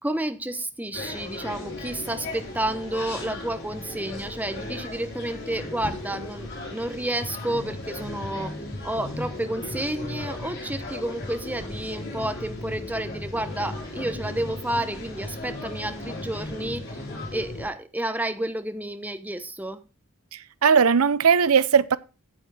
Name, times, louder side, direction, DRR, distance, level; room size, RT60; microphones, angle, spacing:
voice 1, 0.0-8.5 8.8-17.0 17.3-19.8, right 1 dB, 10° right, 0.9 m, -30 dB
sound 1, 0.9-17.7, left 2 dB, 50° left, 4.6 m, -36 dB
voice 2, 20.3-22.0, right 6 dB, 85° right, 0.6 m, -19 dB
8.8 x 8.8 x 4.8 m
head